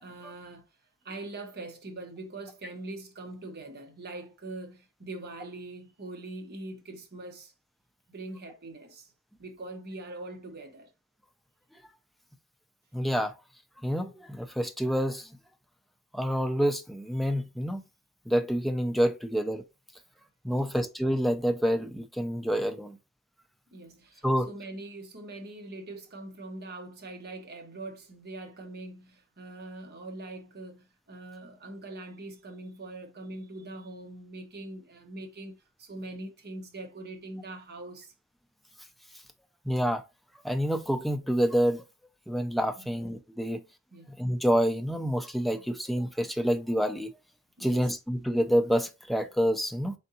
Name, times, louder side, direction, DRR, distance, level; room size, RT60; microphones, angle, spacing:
voice 1, 0.0-0.6 1.0-7.5 8.1-9.1 9.4-10.9 20.5-20.8 23.7-38.1 42.8-42.9 43.9-44.1 45.5-45.6 47.6-47.9, right 2 dB, 45° right, 1.0 m, -42 dB
voice 2, 12.9-13.3 13.8-15.3 16.1-17.8 18.3-19.6 20.4-23.0 24.2-24.5 39.7-40.0 40.4-41.8 42.3-43.6 44.2-47.1 47.6-49.9, equal, ahead, 0.4 m, -27 dB
3.8 x 3.4 x 2.8 m
head